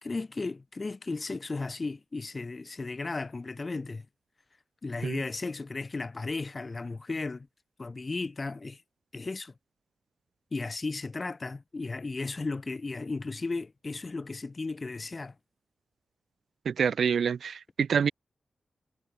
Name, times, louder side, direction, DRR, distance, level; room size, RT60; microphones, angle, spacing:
voice 1, 0.0-4.1 4.8-7.5 7.8-8.8 9.1-9.5 10.5-15.3, left 3 dB, 30° left, 2.4 m, -35 dB
voice 2, 16.6-18.1, right 7 dB, 70° right, 0.9 m, -27 dB
wide cardioid pair, 165°, 0 cm